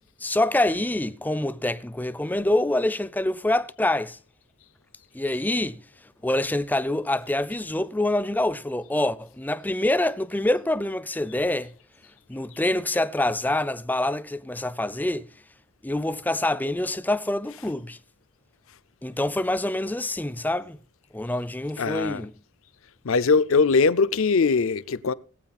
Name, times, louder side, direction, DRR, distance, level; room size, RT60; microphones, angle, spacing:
voice 1, 0.2-4.2 5.1-5.8 6.2-11.7 12.3-15.3 15.8-18.0 19.0-20.8 21.1-22.3, left 1 dB, 10° left, 0.5 m, -26 dB
voice 2, 21.8-22.2 23.0-25.1, left 4 dB, 65° left, 0.6 m, -21 dB
19.5 x 8.6 x 4.2 m
head